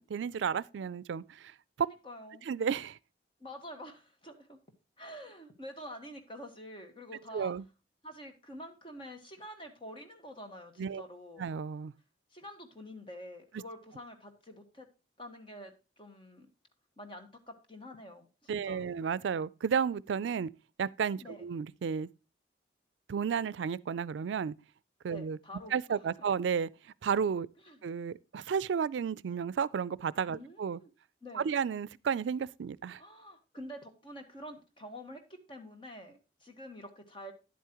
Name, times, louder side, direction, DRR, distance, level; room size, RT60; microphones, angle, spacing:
voice 1, 0.0-1.5 2.5-3.0 7.3-7.6 10.8-11.0 11.4-11.9 18.5-20.5 20.8-22.1 23.1-24.5 25.0-25.4 25.7-26.7 27.0-27.5 27.8-30.8 31.3-33.0, right 6 dB, 85° right, 0.4 m, -32 dB
voice 2, 1.8-2.5 3.4-4.6 5.0-7.5 8.0-11.4 12.3-14.9 15.2-16.5 17.0-18.9 21.2-21.4 25.1-25.8 26.2-26.3 27.6-27.8 30.3-30.9 31.2-31.5 33.0-35.2 35.5-37.3, equal, 30° left, 1.4 m, -47 dB
10.5 x 8.3 x 2.9 m
head